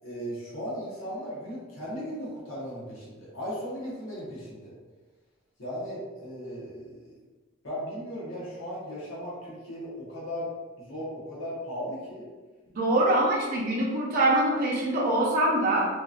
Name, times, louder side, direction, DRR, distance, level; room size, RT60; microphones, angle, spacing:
voice 1, 0.0-4.7 5.6-7.2 7.6-10.5 10.8-12.3, equal, 75° left, -7 dB, 1.0 m, -37 dB
voice 2, 12.7-15.9, right 1 dB, 40° right, -5 dB, 0.7 m, -24 dB
2.8 x 2.5 x 2.4 m, 1.3 s
head